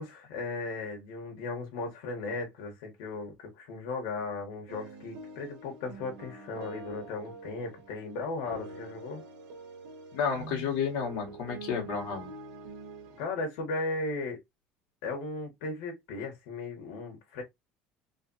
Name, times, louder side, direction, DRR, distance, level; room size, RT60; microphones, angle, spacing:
voice 1, 0.0-9.2 13.2-14.4 15.0-17.4, left 3 dB, 85° left, 1.6 m, -36 dB
sound 1, 4.7-13.2, right 4 dB, 80° right, 1.4 m, -45 dB
voice 2, 10.1-12.3, left 7 dB, 65° left, 1.6 m, -31 dB
3.4 x 3.2 x 3.0 m
cardioid pair, 180°, 3 cm